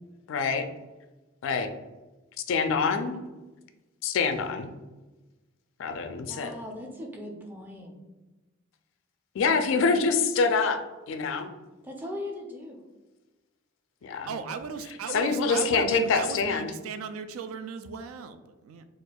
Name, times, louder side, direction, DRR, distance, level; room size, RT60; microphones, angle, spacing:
voice 1, 0.3-0.7 1.4-1.7 2.5-3.2 4.0-4.7 5.8-6.5 9.4-10.8 11.1-11.5 14.0-14.3 15.1-16.7, left 4 dB, 65° left, 8 dB, 0.3 m, -25 dB
voice 2, 6.2-7.9 11.8-12.8, left 1 dB, 10° right, 1 dB, 0.4 m, -39 dB
voice 3, 14.3-18.9, right 5 dB, 85° right, 11 dB, 0.3 m, -36 dB
4.2 x 2.4 x 2.2 m, 1.1 s
head